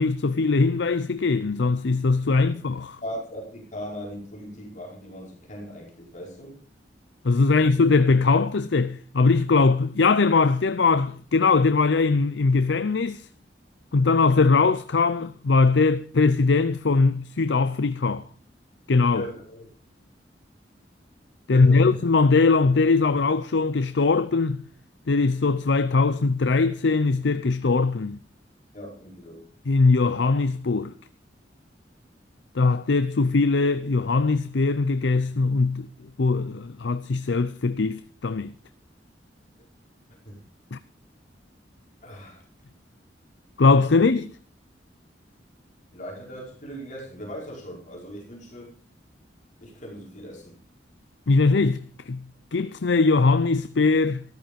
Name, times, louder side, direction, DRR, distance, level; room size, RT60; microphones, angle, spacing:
voice 1, 0.0-3.0 7.2-13.3 13.9-18.2 18.9-19.2 21.5-24.6 25.1-28.2 29.7-30.9 32.5-35.9 36.2-38.5 40.7-40.8 43.6-44.3 51.3-52.2 52.5-54.2, left 4 dB, 75° left, 0.6 m, -21 dB
voice 2, 3.0-6.5 7.5-7.7 19.1-19.7 21.5-22.0 28.7-29.4 40.1-40.4 42.0-42.4 43.9-44.1 45.9-48.8 49.6-50.6, equal, 45° left, 5.0 m, -39 dB
14.0 x 13.0 x 5.2 m
head